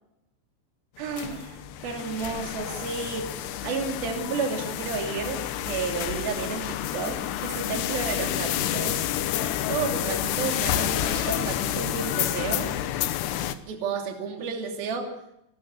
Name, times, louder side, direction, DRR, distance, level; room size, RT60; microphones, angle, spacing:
sound 1, 1.0-13.6, left 11 dB, 75° left, 2.9 m, -29 dB
voice 1, 1.0-3.3 3.6-9.0 9.4-12.7 13.7-15.1, right 5 dB, 55° right, 3 dB, 4.3 m, -32 dB
28.5 x 12.5 x 8.2 m, 0.82 s
omnidirectional pair, 5.5 m